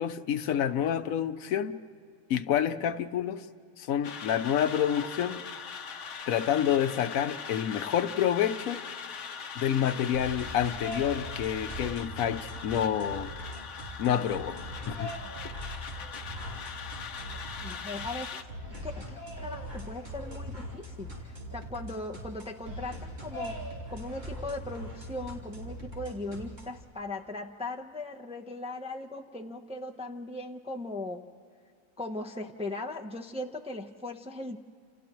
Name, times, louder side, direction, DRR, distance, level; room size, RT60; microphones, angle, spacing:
voice 1, 0.0-1.8 2.3-3.5 3.8-5.4 6.3-8.8 9.6-13.3 14.0-14.6 14.9-15.1, left 9 dB, 85° left, 11 dB, 1.1 m, -28 dB
sound 1, 4.0-18.4, left 6 dB, 65° left, 1.1 m, -41 dB
sound 2, 10.1-26.8, equal, 45° right, 3.5 m, -41 dB
voice 2, 17.6-18.4 18.8-23.6 23.9-31.2 32.0-34.6, left 2 dB, 5° right, 2 dB, 0.7 m, -38 dB
29.5 x 29.0 x 3.1 m, 2.2 s
omnidirectional pair, 1.4 m